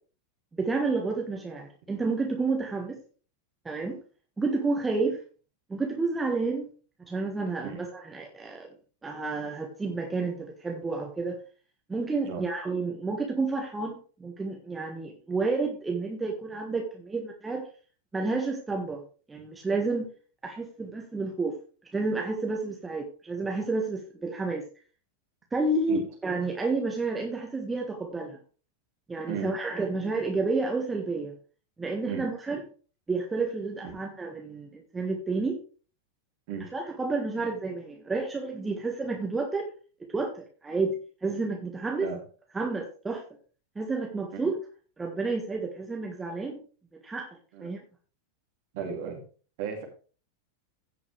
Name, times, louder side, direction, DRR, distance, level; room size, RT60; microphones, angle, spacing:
voice 1, 0.6-3.0 3.7-4.0 4.4-5.2 5.7-6.7 7.1-8.7 9.0-11.4 11.9-17.7 18.1-19.0 19.3-20.1 20.4-21.6 21.9-24.6 25.5-28.4 29.1-31.3 31.8-32.6 33.1-35.6 36.7-39.7 40.1-42.1 42.5-43.2 43.8-44.6 45.0-46.6 46.9-47.3 47.6-47.8, right 3 dB, 10° right, 1 dB, 1.7 m, -30 dB
voice 2, 48.7-49.2 49.6-49.8, right 6 dB, 50° right, 2 dB, 2.7 m, -34 dB
16.0 x 5.9 x 3.3 m, 0.37 s
figure-of-eight pair, 90°, 0 cm